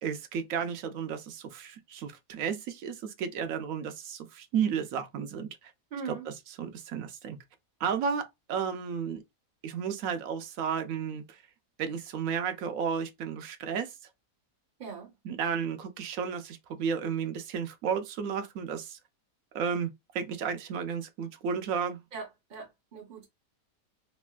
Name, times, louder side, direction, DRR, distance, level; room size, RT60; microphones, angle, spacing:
voice 1, 0.0-5.7 6.1-6.2 6.6-7.4 7.8-9.2 9.6-11.4 11.8-13.9 15.2-19.0 19.5-22.0, right 7 dB, 70° right, 1.0 m, -33 dB
voice 2, 5.9-6.3 14.8-15.1 22.1-23.3, right 5 dB, 45° right, 0.7 m, -41 dB
3.2 x 2.4 x 2.2 m
omnidirectional pair, 1.5 m